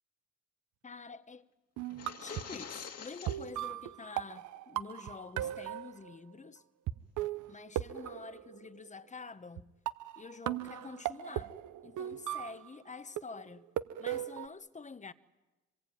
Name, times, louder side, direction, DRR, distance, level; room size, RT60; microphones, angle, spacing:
voice 1, 0.8-1.5 2.2-6.6 7.5-9.7 10.2-11.5 11.8-13.7 14.0-15.1, left 4 dB, 25° left, 1.1 m, -47 dB
sound 1, 1.8-3.6, left 7 dB, 55° left, 2.2 m, -46 dB
sound 2, 1.8-2.6 3.3-6.2 6.9-7.0 7.2-8.9 9.6-9.7 9.9-12.8 13.2-14.5, right 13 dB, 80° right, 0.8 m, -38 dB
24.5 x 20.5 x 9.3 m
cardioid pair, 90°, 30 cm